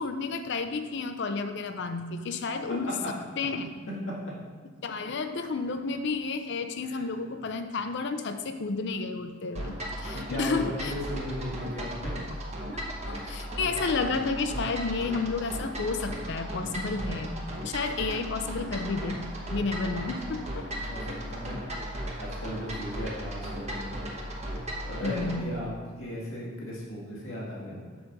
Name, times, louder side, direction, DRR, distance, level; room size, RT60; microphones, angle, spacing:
voice 1, 0.0-3.7 4.8-10.9 12.7-12.8 13.1-19.2 19.5-20.9 25.0-25.5, left 4 dB, 60° left, 8 dB, 0.5 m, -31 dB
voice 2, 3.9-4.3 6.8-7.1 9.5-9.7 10.1-12.2 20.0-20.3 20.7-21.6 22.2-24.0 24.7-25.7 26.0-27.8, equal, 90° left, -4 dB, 1.9 m, -36 dB
sound 1, 9.6-25.4, equal, 35° right, 1.0 m, -36 dB
6.8 x 4.2 x 5.2 m, 1.5 s
head